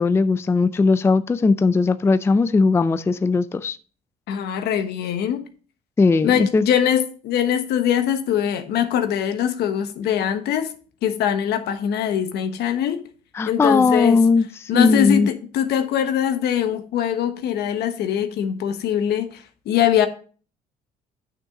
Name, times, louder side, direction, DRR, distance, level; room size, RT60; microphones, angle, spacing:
voice 1, 0.0-3.8 6.0-6.6 13.3-15.3, left 4 dB, 15° left, 0.4 m, -18 dB
voice 2, 4.3-5.4 6.2-10.7 11.0-13.0 13.5-14.2 14.7-20.1, left 9 dB, 75° left, 1.1 m, -22 dB
9.4 x 6.3 x 3.8 m
cardioid pair, 110°, 17 cm